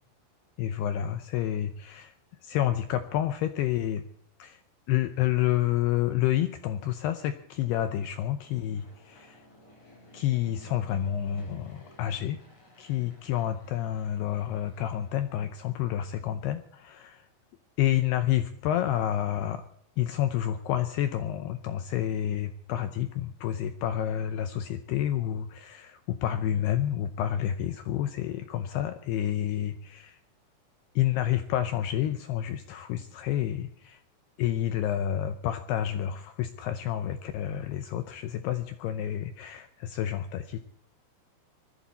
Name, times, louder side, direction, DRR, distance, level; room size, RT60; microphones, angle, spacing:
voice 1, 0.6-2.1 2.4-4.0 4.4-4.6 4.9-9.5 10.1-12.4 12.8-17.3 17.8-19.6 20.0-30.2 31.0-34.0 34.4-40.6, left 11 dB, 90° left, 10 dB, 2.3 m, -29 dB
Fixed-wing aircraft airplane, 5.3-16.4, equal, 35° left, 5.7 m, -57 dB
21.0 x 14.0 x 4.2 m, 0.65 s
omnidirectional pair, 5.6 m